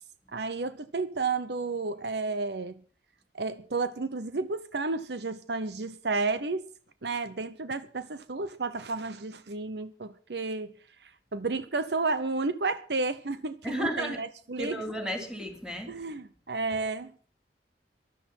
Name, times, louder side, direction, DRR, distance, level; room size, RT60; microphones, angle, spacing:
voice 1, 0.3-2.7 3.3-6.6 7.0-10.7 11.0-14.8 15.9-17.1, right 3 dB, 70° right, 0.9 m, -32 dB
voice 2, 13.6-14.2 14.6-16.0, equal, 5° right, 3.1 m, -33 dB
13.5 x 12.0 x 5.9 m
head